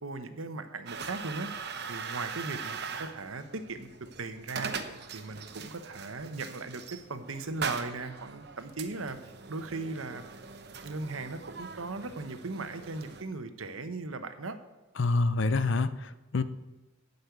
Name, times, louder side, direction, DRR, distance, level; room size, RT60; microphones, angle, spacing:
voice 1, 0.0-1.5 1.9-3.9 4.2-4.7 5.1-9.2 9.5-10.2 10.8-14.6, right 3 dB, 85° right, 10 dB, 1.0 m, -38 dB
sound 1, 0.9-13.2, right 5 dB, 55° right, 0.8 m, -41 dB
voice 2, 15.0-16.4, left 3 dB, 65° left, 14 dB, 0.6 m, -27 dB
11.5 x 5.4 x 8.0 m, 1.1 s
head